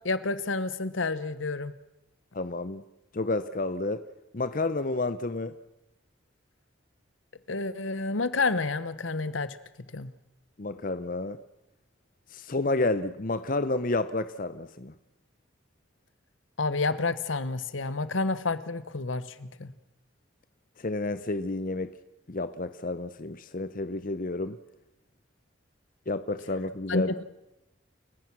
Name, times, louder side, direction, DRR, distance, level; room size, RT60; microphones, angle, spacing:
voice 1, 0.0-1.7 7.5-9.6 9.9-10.1 16.6-19.7 26.9-27.0, left 3 dB, 80° left, 15 dB, 1.1 m, -29 dB
voice 2, 2.3-2.8 3.1-4.0 4.3-5.5 10.6-11.4 12.3-14.9 20.8-21.9 22.3-24.6 26.1-27.1, left 2 dB, 45° left, 12 dB, 0.7 m, -30 dB
30.0 x 15.5 x 6.1 m, 0.91 s
head